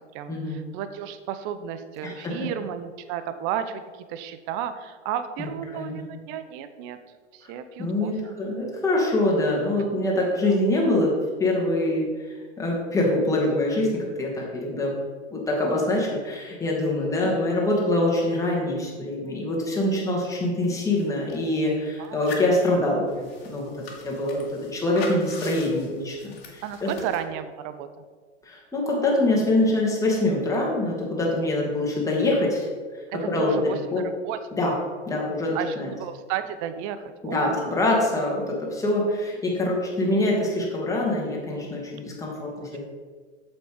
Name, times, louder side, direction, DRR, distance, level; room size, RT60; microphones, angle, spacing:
voice 1, 0.1-7.0 7.3-8.4 10.4-10.6 17.2-17.4 22.0-22.2 26.6-27.9 33.1-33.8 34.2-34.4 34.6-34.8 35.5-37.7 42.3-42.7, right 9 dB, 35° right, 10 dB, 0.7 m, -33 dB
voice 2, 2.0-2.3 5.4-5.5 5.7-6.0 7.8-11.1 11.4-14.9 15.3-23.7 24.0-26.9 28.5-32.7 33.3-34.0 34.5-34.7 35.1-35.9 37.2-42.8, left 1 dB, 10° left, -3 dB, 2.6 m, -24 dB
sound 1, 20.3-20.4 20.6-21.6 22.0-27.2, left 5 dB, 55° left, 2.1 m, -41 dB
7.8 x 7.3 x 5.1 m, 1.5 s
hypercardioid pair, 105°, 35 cm